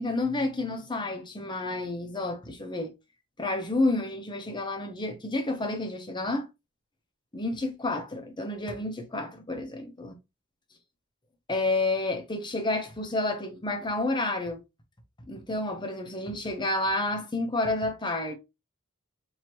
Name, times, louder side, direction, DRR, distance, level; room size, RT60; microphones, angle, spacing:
voice 1, 0.0-2.9 3.4-6.5 7.3-10.1 11.5-14.6 15.3-18.3, left 2 dB, 20° left, 0.8 m, -30 dB
4.5 x 2.8 x 2.9 m
head